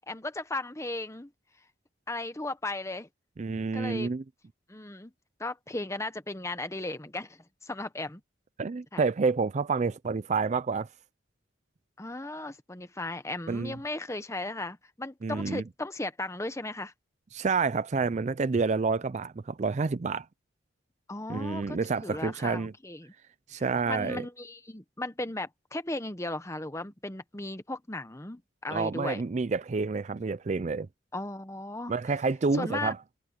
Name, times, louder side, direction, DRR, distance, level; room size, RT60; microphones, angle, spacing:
voice 1, 0.1-1.3 2.1-3.1 3.7-4.1 4.7-5.1 5.4-8.2 8.9-9.0 12.0-16.9 21.1-23.1 23.9-29.2 31.1-31.9 32.5-32.9, left 2 dB, 15° left, 1.1 m, -36 dB
voice 2, 3.4-4.2 8.6-10.9 13.5-13.7 15.2-15.6 17.3-20.3 21.3-22.7 23.5-24.2 28.7-30.9 31.9-33.0, right 4 dB, 40° right, 0.4 m, -28 dB
head